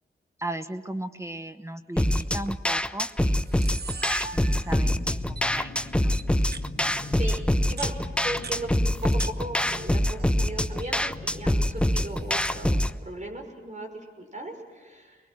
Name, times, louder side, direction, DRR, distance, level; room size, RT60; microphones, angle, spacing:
voice 1, 0.4-3.9 4.3-6.1, right 1 dB, 15° right, 9 dB, 1.1 m, -37 dB
sound 1, 2.0-13.0, left 1 dB, 5° left, 0.7 m, -25 dB
Camera, 2.2-2.5 3.1-3.2 3.4-4.9 5.4-5.5 6.1-6.7 7.5-9.3 9.6-10.3 10.6-11.0 11.8-12.6, right 5 dB, 50° right, 0.9 m, -41 dB
sound 2, 3.9-13.0, left 3 dB, 50° left, 3.0 m, -41 dB
voice 2, 7.1-13.9 14.2-15.2, right 1 dB, 35° right, 3 dB, 5.7 m, -37 dB
24.0 x 21.5 x 7.7 m, 1.5 s
cardioid pair, 60°, 21 cm